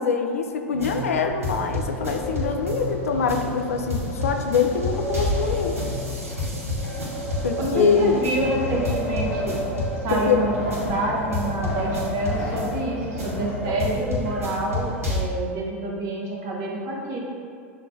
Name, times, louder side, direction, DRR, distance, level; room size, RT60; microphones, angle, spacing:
voice 1, 0.0-5.8 7.4-8.3 10.1-10.5, left 5 dB, 80° left, 4 dB, 0.3 m, -24 dB
sound 1, 0.7-15.2, left 1 dB, 85° right, 0.9 m, -31 dB
Wind, 1.7-14.3, left 1 dB, 50° left, 0.9 m, -32 dB
voice 2, 7.6-9.6 10.0-17.2, right 2 dB, 50° right, -2 dB, 0.9 m, -27 dB
6.2 x 2.1 x 2.7 m, 2.3 s
hypercardioid pair, 90°, 8 cm